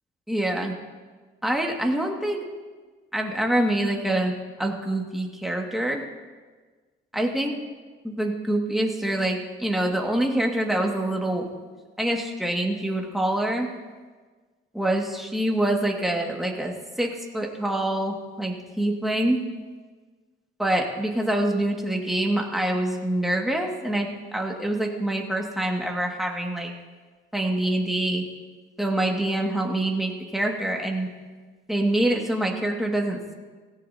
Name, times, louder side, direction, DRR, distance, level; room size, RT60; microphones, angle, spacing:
voice 1, 0.3-0.7 1.4-2.4 3.1-4.3 4.6-6.0 7.1-7.6 8.0-11.5 12.0-13.7 14.7-19.4 20.6-26.7 27.3-28.2 28.8-31.1 31.7-33.3, right 1 dB, ahead, 0 dB, 2.1 m, -25 dB
16.0 x 16.0 x 2.9 m, 1.4 s
cardioid pair, 90°, 20 cm